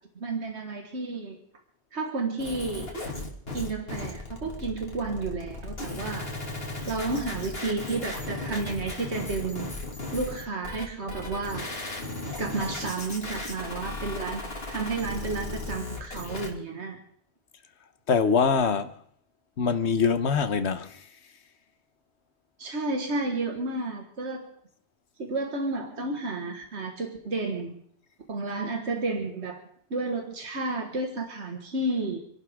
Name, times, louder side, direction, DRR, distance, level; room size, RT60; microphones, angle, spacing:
voice 1, 0.2-1.4 1.9-2.9 3.5-6.3 6.9-9.7 10.1-11.7 12.4-14.4 14.7-17.0 22.6-24.5 25.2-27.7 28.3-29.6 29.9-32.2, right 3 dB, 75° right, 2.0 m, -31 dB
sound 1, 2.4-16.5, left 2 dB, 60° left, 2.7 m, -36 dB
voice 2, 18.1-18.9 19.6-21.0, left 5 dB, 75° left, 1.3 m, -23 dB
29.5 x 11.5 x 3.7 m
omnidirectional pair, 1.1 m